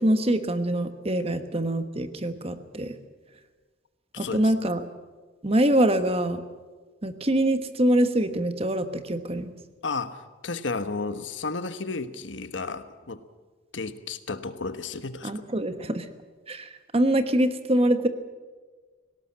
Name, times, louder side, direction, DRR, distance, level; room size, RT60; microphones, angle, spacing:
voice 1, 0.0-2.9 4.2-4.8 5.4-6.4 7.0-9.5 15.2-16.1 16.5-18.1, right 1 dB, 30° right, 10 dB, 1.2 m, -24 dB
voice 2, 4.1-4.5 9.8-13.2 13.7-15.3, left 4 dB, 75° left, 11 dB, 1.3 m, -33 dB
18.5 x 17.5 x 8.7 m, 1.4 s
head